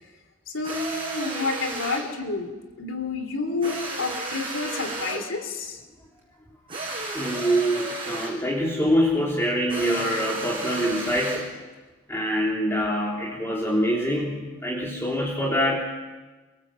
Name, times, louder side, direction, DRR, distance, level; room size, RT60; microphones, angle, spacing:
voice 1, 0.5-5.8, left 3 dB, 70° left, 6 dB, 3.3 m, -30 dB
sound 1, 0.6-2.1 3.6-5.3 6.7-8.4 9.7-11.5, right 2 dB, 25° right, 7.5 m, -33 dB
voice 2, 7.2-11.5 12.1-15.8, equal, 15° left, -4 dB, 3.5 m, -25 dB
28.0 x 24.5 x 7.7 m, 1.2 s
head